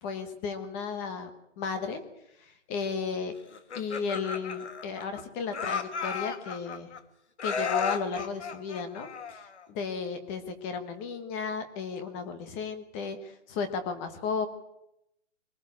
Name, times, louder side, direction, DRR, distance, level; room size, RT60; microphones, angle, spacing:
voice 1, 0.0-1.3 1.6-2.0 2.7-3.3 3.7-6.9 7.4-14.5, left 5 dB, 10° left, 10 dB, 1.2 m, -34 dB
Laughter, 3.5-5.2 5.5-7.0 7.4-9.7, left 6 dB, 70° left, 2.4 m, -34 dB
24.5 x 19.0 x 8.4 m, 0.81 s
hypercardioid pair, 175°, 36 cm